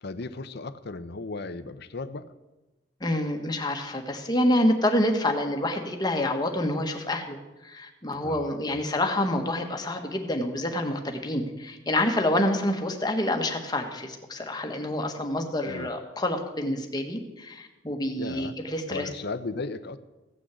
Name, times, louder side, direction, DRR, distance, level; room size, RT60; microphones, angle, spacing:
voice 1, 0.0-2.3 8.2-8.8 15.6-15.9 18.2-18.6 18.9-20.0, left 3 dB, 55° left, 11 dB, 0.7 m, -36 dB
voice 2, 3.0-7.4 7.6-19.1, left 1 dB, 20° left, 4 dB, 1.5 m, -27 dB
16.0 x 6.3 x 8.3 m, 1.1 s
head